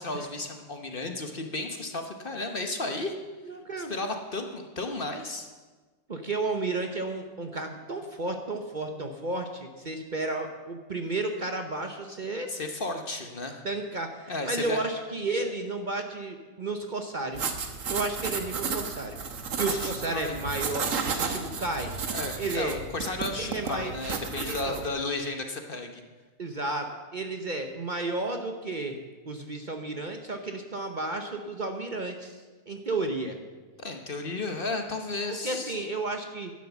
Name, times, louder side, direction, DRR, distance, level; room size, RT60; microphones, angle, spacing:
voice 1, 0.0-3.1 3.8-5.5 12.5-13.6 14.3-14.8 19.6-20.4 22.1-26.0 33.8-35.8, left 2 dB, 40° left, 5 dB, 1.1 m, -33 dB
voice 2, 3.4-3.9 6.1-12.5 13.6-17.5 17.9-19.2 19.6-21.9 22.4-22.8 23.4-23.9 24.4-24.8 26.4-29.0 29.2-32.4 32.7-33.4 35.3-36.5, right 2 dB, 40° right, 5 dB, 0.9 m, -32 dB
sound 1, 17.3-24.9, right 5 dB, 65° right, 1.5 m, -33 dB
11.0 x 10.5 x 7.2 m, 1.3 s
omnidirectional pair, 1.5 m